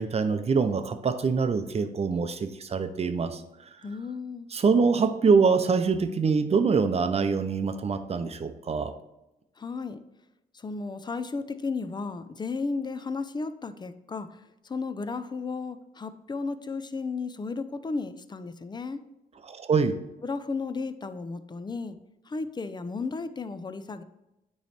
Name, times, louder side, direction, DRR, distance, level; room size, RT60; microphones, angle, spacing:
voice 1, 0.0-3.4 4.5-8.9 19.4-20.0, right 5 dB, 40° right, 9 dB, 0.6 m, -24 dB
voice 2, 3.8-4.5 9.6-10.0 10.5-14.4 14.6-19.0 20.2-22.0 22.3-24.0, left 4 dB, 25° left, 11 dB, 0.5 m, -34 dB
9.1 x 3.2 x 4.2 m, 0.93 s
cardioid pair, 95°, 17 cm